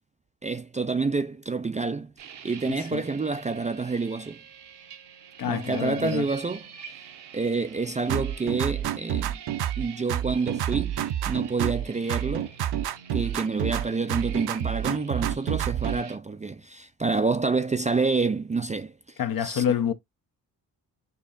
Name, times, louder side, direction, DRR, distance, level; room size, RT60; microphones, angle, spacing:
voice 1, 0.4-2.1 2.4-4.4 5.5-6.7 7.3-9.4 9.8-11.0 11.3-12.5 13.1-18.9 19.4-19.6, right 4 dB, 20° right, 0.4 m, -28 dB
sound 1, 2.2-16.2, right 8 dB, 85° right, 0.9 m, -46 dB
voice 2, 5.4-6.3 19.2-19.9, left 9 dB, 60° left, 0.8 m, -27 dB
sound 2, 8.1-9.8 10.1-11.8 12.1-13.8 14.1-16.0, right 11 dB, 70° right, 0.6 m, -28 dB
6.8 x 2.8 x 2.5 m
cardioid pair, 90°, 40 cm